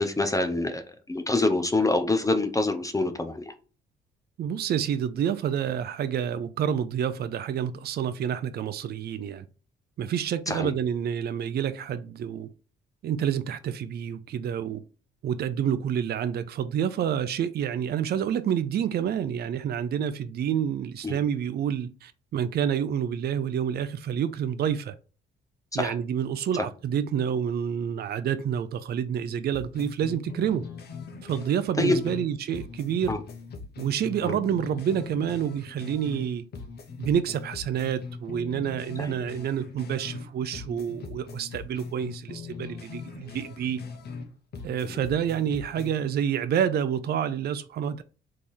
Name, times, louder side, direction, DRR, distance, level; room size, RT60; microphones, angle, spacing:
voice 1, 0.0-3.5 10.5-10.7 21.0-21.2 25.7-25.9 31.8-32.0 33.1-33.2 34.2-34.4 39.0-39.1 44.8-44.9, left 2 dB, 15° left, 0.7 m, -26 dB
voice 2, 4.4-9.4 10.0-12.5 13.0-14.8 15.2-24.9 25.7-30.6 31.2-33.2 33.8-36.4 37.0-43.8 44.6-48.0, right 8 dB, 55° right, 0.5 m, -28 dB
sound 1, 29.5-32.3 32.5-36.3 36.5-40.3 40.5-44.3 44.5-46.0, left 5 dB, 55° left, 1.0 m, -40 dB
3.5 x 3.2 x 4.2 m
cardioid pair, 90°, 20 cm